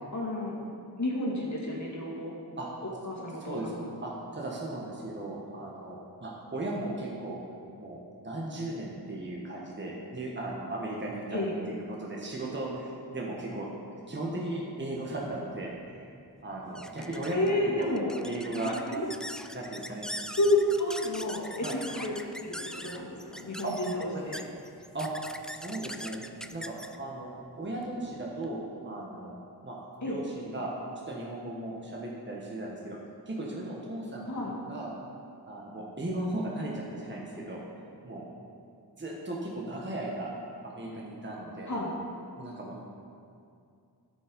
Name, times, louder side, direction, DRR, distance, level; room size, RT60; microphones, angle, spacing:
voice 1, 0.1-0.5 1.0-2.3 3.0-3.8 11.3-11.5 17.3-18.1 18.6-19.0 20.4-22.1 22.4-24.4 30.0-30.2 34.3-34.5 41.7-41.9, left 1 dB, 45° left, -4 dB, 2.2 m, -30 dB
voice 2, 3.4-3.7 4.0-7.4 7.8-11.4 11.7-16.1 16.4-17.9 18.2-18.7 19.5-20.1 21.6-21.8 23.6-23.7 24.1-24.2 24.9-25.1 25.4-26.2 26.5-27.3 27.6-29.3 29.6-29.8 30.0-30.7 31.1-33.0 33.3-34.3 34.6-34.9 35.5-37.6 38.0-38.2 38.9-40.3 40.6-41.8 42.4-42.8, right 2 dB, 30° right, -3 dB, 1.4 m, -36 dB
sound 1, 15.6-28.5, equal, ahead, 0.3 m, -43 dB
12.5 x 5.5 x 5.3 m, 2.4 s
wide cardioid pair, 70°, 40 cm